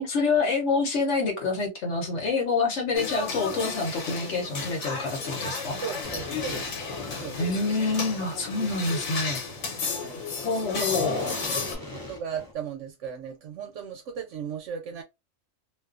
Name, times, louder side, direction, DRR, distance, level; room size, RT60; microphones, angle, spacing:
voice 1, 0.0-5.8 7.4-9.4 10.4-11.6, left 3 dB, 65° left, 1.1 m, -27 dB
sound 1, 2.9-11.7, left 4 dB, 85° left, 1.3 m, -33 dB
voice 2, 5.8-6.7 7.2-7.4 10.0-10.2 10.9-11.1 11.3-11.4 11.9-15.0, right 7 dB, 70° right, 0.9 m, -36 dB
sound 2, 6.0-12.5, left 2 dB, 35° left, 0.3 m, -41 dB
2.5 x 2.2 x 2.3 m
omnidirectional pair, 1.4 m